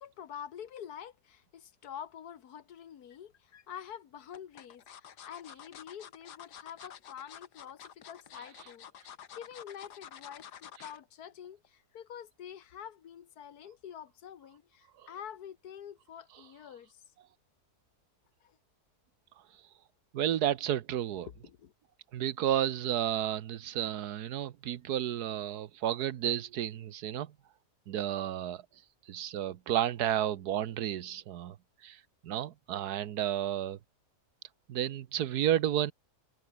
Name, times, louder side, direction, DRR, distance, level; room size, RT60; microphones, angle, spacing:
voice 1, 0.0-17.0 18.4-18.6 21.1-21.7, left 9 dB, 75° left, 1.6 m, -47 dB
sound 1, 3.1-3.6 4.3-11.0 11.4-11.7 12.0-12.1, left 9 dB, 90° left, 1.8 m, -50 dB
voice 2, 20.1-21.3 22.1-27.3 27.9-28.6 29.1-31.6 31.8-33.8 34.7-35.9, right 11 dB, 75° right, 1.4 m, -32 dB
omnidirectional pair, 1.7 m